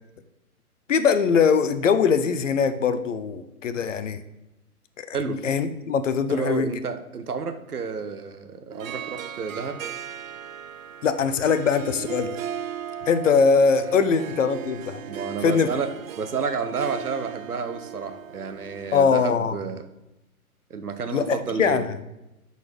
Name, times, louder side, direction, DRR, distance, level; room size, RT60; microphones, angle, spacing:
voice 1, 0.9-4.2 5.0-6.7 11.0-12.3 13.1-15.0 15.4-15.7 18.9-19.6 21.1-22.0, left 6 dB, 55° left, 11 dB, 0.6 m, -22 dB
voice 2, 6.3-9.8 15.1-15.9 16.2-19.9 20.7-21.8, right 5 dB, 80° right, 8 dB, 0.9 m, -30 dB
Harp, 8.7-19.0, right 9 dB, 60° right, 0.5 m, -37 dB
5.9 x 4.1 x 4.7 m, 0.93 s
figure-of-eight pair, 125°, 45 cm